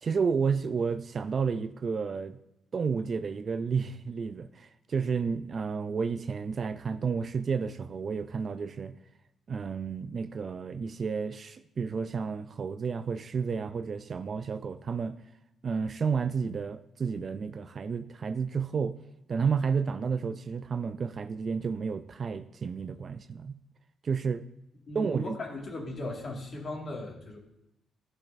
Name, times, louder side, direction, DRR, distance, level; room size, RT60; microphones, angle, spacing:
voice 1, 0.0-2.4 2.7-8.9 9.5-15.2 15.6-19.0 19.3-23.5 24.0-24.4 24.9-25.4, right 5 dB, 45° right, 11 dB, 0.3 m, -31 dB
voice 2, 24.9-27.4, left 2 dB, 45° left, -1 dB, 1.8 m, -37 dB
12.0 x 4.4 x 2.5 m, 0.87 s
cardioid pair, 90°, 0 cm